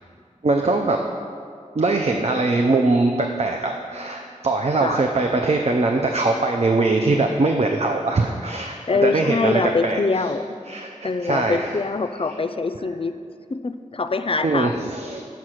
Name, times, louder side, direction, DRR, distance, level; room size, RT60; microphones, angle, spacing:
voice 1, 0.4-1.0 1.8-8.8 9.0-10.0 10.7-11.8 14.4-15.2, right 3 dB, 55° right, 3 dB, 0.5 m, -21 dB
voice 2, 7.0-7.4 8.9-10.4 11.0-13.2 13.5-14.9, left 4 dB, 45° left, 10 dB, 0.4 m, -24 dB
5.9 x 5.7 x 6.3 m, 2.3 s
wide cardioid pair, 55°, 13 cm